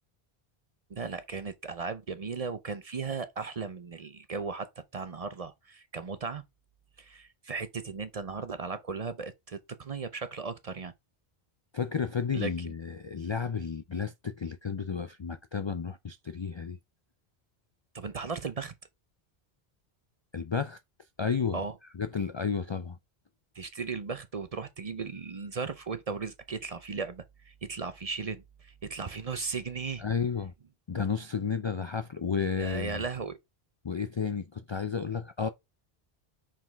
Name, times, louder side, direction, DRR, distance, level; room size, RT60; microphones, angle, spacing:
voice 1, 0.9-6.4 7.0-10.9 12.3-12.7 17.9-18.7 21.5-21.7 23.6-30.0 32.6-33.4, right 5 dB, 45° right, 0.6 m, -36 dB
voice 2, 11.7-16.8 20.3-20.8 21.2-21.6 21.9-23.0 30.0-30.5 30.9-33.0 33.8-35.5, left 6 dB, 45° left, 0.3 m, -32 dB
5.7 x 5.0 x 3.4 m
omnidirectional pair, 1.0 m